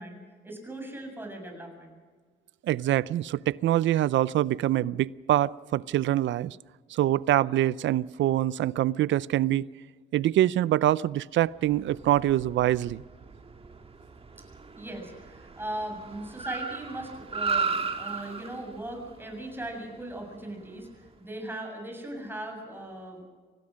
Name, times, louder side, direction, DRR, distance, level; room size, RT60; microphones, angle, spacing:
voice 1, 0.0-2.0 14.8-23.2, right 1 dB, 10° right, 7.3 m, -39 dB
voice 2, 2.6-6.6 6.9-9.7 10.1-13.0, right 13 dB, 70° right, 0.6 m, -25 dB
Car, 11.6-21.1, right 5 dB, 30° right, 1.9 m, -36 dB
25.0 x 18.5 x 6.4 m
cardioid pair, 90°, 20 cm